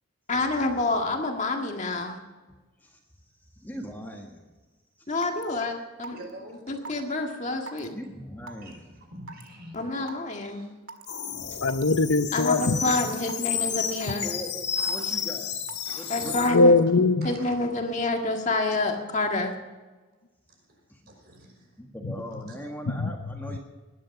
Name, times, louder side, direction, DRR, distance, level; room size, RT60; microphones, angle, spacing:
voice 1, 0.3-2.2 5.1-6.1 6.7-7.9 9.7-10.6 12.3-14.2 16.1-16.8 17.2-19.5, left 2 dB, 35° left, 3 dB, 1.8 m, -28 dB
voice 2, 3.6-4.4 5.0-5.1 7.9-8.8 11.5-11.6 12.6-13.1 13.7-13.9 14.2-15.5 15.9-16.5 20.9-21.0 21.8-23.6, equal, 10° left, 1 dB, 1.6 m, -40 dB
Raindrop / Water tap faucet / Drip, 5.2-5.4 6.0-6.3 6.8-7.0 7.7-7.8 8.5-8.7 9.3-9.5 10.1-10.2 10.9-11.1 11.7-11.8 12.5-12.6 13.3-13.6 14.1-14.4 14.9-15.1 15.7-15.9, right 4 dB, 75° right, 1.8 m, -40 dB
voice 3, 6.1-6.7 8.6-10.7 13.1-13.3 14.8-15.2 15.8-16.6 17.2-17.6 20.7-21.7 22.5-22.6, right 1 dB, 45° right, 2 dB, 5.2 m, -47 dB
sound 1, 11.1-16.5, left 8 dB, 50° left, 2.0 m, -32 dB
voice 4, 11.6-12.8 16.5-17.3 22.9-23.1, left 3 dB, 70° left, 11 dB, 0.8 m, -20 dB
20.0 x 11.5 x 5.9 m, 1.2 s
head